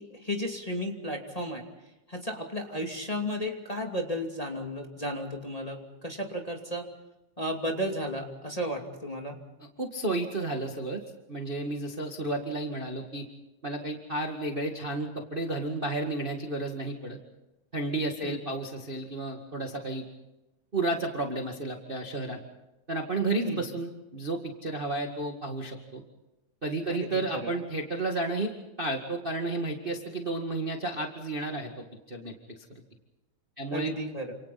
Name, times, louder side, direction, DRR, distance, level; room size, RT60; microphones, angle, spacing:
voice 1, 0.0-1.6 2.1-6.9 7.4-9.4 18.2-18.4 23.4-23.6 26.9-27.5 33.7-34.3, equal, 15° left, 1 dB, 2.3 m, -34 dB
voice 2, 9.8-11.0 11.3-13.3 13.6-17.2 17.7-20.1 20.7-22.4 22.9-26.0 26.6-32.8 33.6-33.9, right 2 dB, 20° right, 2 dB, 1.8 m, -32 dB
29.5 x 28.0 x 4.2 m, 0.99 s
omnidirectional pair, 3.5 m